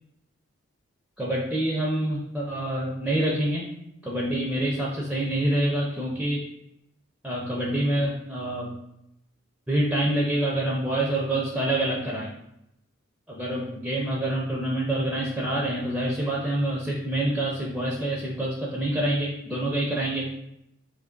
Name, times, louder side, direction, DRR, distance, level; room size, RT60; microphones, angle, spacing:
voice 1, 1.2-3.7 4.0-6.4 7.2-8.8 9.7-12.3 13.3-20.3, right 1 dB, 5° right, -4 dB, 0.4 m, -26 dB
2.9 x 2.5 x 3.7 m, 0.81 s
head